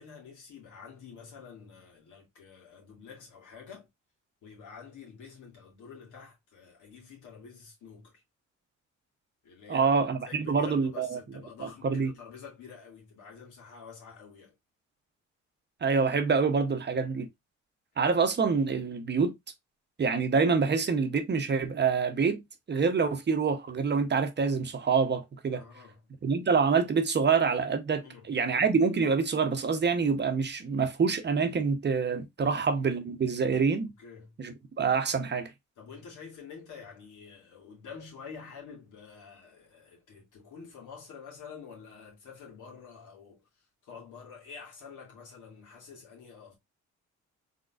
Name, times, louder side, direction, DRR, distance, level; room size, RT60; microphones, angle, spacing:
voice 1, 0.0-3.9 4.4-8.2 9.4-14.5 25.5-26.0 28.0-28.3 32.4-32.6 34.0-34.4 35.8-46.5, left 6 dB, 75° left, 2.4 m, -48 dB
voice 2, 9.7-11.2 11.8-12.1 15.8-17.3 18.0-19.3 20.0-22.4 22.7-25.6 26.2-33.9 34.4-35.5, right 5 dB, 35° right, 0.8 m, -26 dB
3.9 x 3.7 x 2.4 m
cardioid pair, 90°, 30 cm